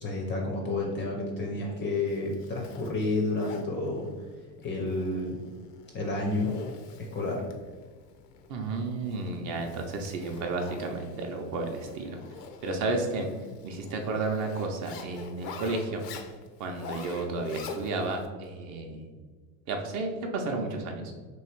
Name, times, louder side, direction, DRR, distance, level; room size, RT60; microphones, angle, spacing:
voice 1, 0.0-4.1 4.6-5.4 5.9-6.5 7.0-7.4, left 2 dB, 25° left, 0 dB, 0.5 m, -30 dB
Zipper (clothing), 2.1-18.3, left 5 dB, 85° left, 0.7 m, -46 dB
voice 2, 8.5-12.2 12.6-13.3 13.6-16.0 16.6-19.1 19.7-21.1, right 3 dB, 40° right, 3 dB, 0.6 m, -32 dB
3.1 x 2.7 x 4.4 m, 1.4 s
supercardioid pair, 140°, 47 cm